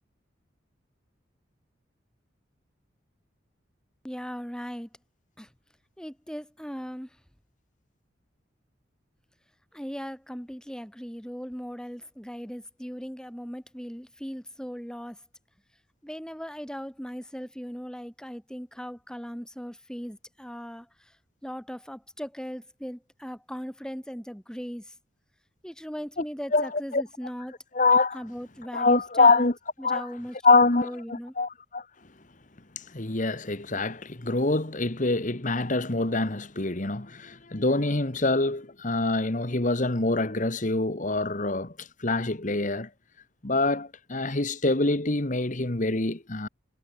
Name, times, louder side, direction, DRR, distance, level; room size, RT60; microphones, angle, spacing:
voice 1, 4.0-4.9 5.4-5.5 6.0-7.2 9.7-15.2 16.0-21.2 21.4-24.9 25.6-27.6 28.1-29.5 29.8-31.3, equal, 5° left, 6.1 m, -38 dB
voice 2, 26.5-27.0 27.7-28.2 28.7-29.5 29.8-30.1 30.4-31.8 32.7-42.9 43.4-46.5, left 3 dB, 40° left, 1.6 m, -25 dB
head